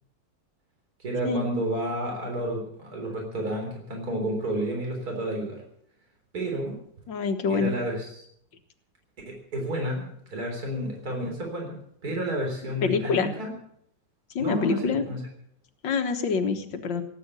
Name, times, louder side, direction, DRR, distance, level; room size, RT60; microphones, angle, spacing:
voice 1, 1.0-5.6 6.3-6.8 7.5-8.1 9.3-13.5 14.4-15.2, right 1 dB, 55° right, 1 dB, 4.3 m, -31 dB
voice 2, 7.1-7.7 12.8-13.3 14.3-15.1 15.8-17.0, left 5 dB, 85° left, 6 dB, 2.1 m, -26 dB
17.5 x 8.6 x 8.2 m, 0.70 s
omnidirectional pair, 2.0 m